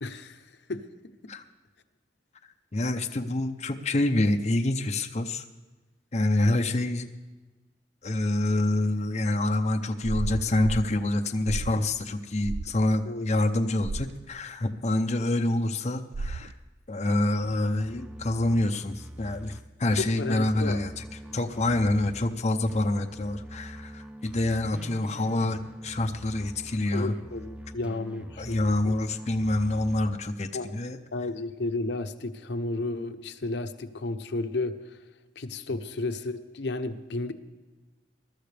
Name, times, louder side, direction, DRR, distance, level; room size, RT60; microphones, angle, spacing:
voice 1, 0.0-0.8 13.1-13.3 20.0-20.9 26.9-29.1 30.5-30.7 31.1-35.0 35.4-37.3, left 2 dB, 75° left, 9 dB, 0.8 m, -33 dB
voice 2, 2.7-5.4 6.1-7.1 8.0-16.5 16.9-21.0 21.3-27.1 28.4-31.0, left 1 dB, 40° left, 4 dB, 0.6 m, -27 dB
sound 1, 10.0-10.9 11.5-11.8 12.4-12.7 13.8-14.1 16.1-16.5, right 3 dB, 70° right, 0.4 m, -33 dB
sound 2, 17.4-22.3 22.7-30.2, right 1 dB, 5° right, 0.4 m, -43 dB
21.0 x 12.5 x 3.4 m, 1.2 s
head